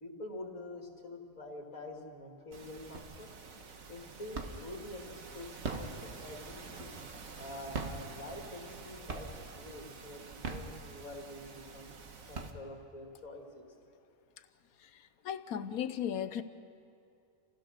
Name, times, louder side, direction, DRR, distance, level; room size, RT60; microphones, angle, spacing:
voice 1, 0.0-3.3 3.9-6.9 7.4-9.3 9.6-11.9 12.3-13.7, left 1 dB, 70° left, 1 dB, 2.9 m, -46 dB
sound 1, 2.5-12.5, right 4 dB, 75° right, 1.6 m, -49 dB
sound 2, 2.9-3.4 3.8-4.8 5.4-7.2 7.6-8.8 9.1-9.6 10.2-11.3 11.8-11.9 12.2-13.1, right 4 dB, 55° right, 1.6 m, -41 dB
voice 2, 14.8-16.4, left 9 dB, 90° left, 12 dB, 1.3 m, -37 dB
29.0 x 16.0 x 6.5 m, 2.4 s
omnidirectional pair, 1.5 m